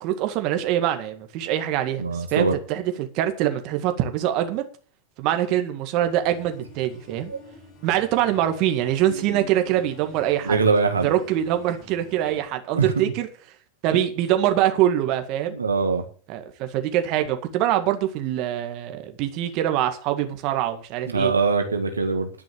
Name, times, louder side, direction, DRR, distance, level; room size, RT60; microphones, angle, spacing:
voice 1, 0.0-4.6 5.2-7.3 7.8-10.6 11.0-13.3 13.8-15.5 16.3-21.3, right 12 dB, 50° right, 7 dB, 1.9 m, -24 dB
voice 2, 2.0-2.5 7.3-7.4 10.5-11.1 12.7-12.9 15.5-16.0 21.1-22.3, right 4 dB, 90° right, 5 dB, 1.8 m, -22 dB
sound 1, 6.0-12.5, left 5 dB, 45° left, 7.8 m, -47 dB
11.5 x 6.3 x 8.6 m, 0.40 s
hypercardioid pair, 90°, 0 cm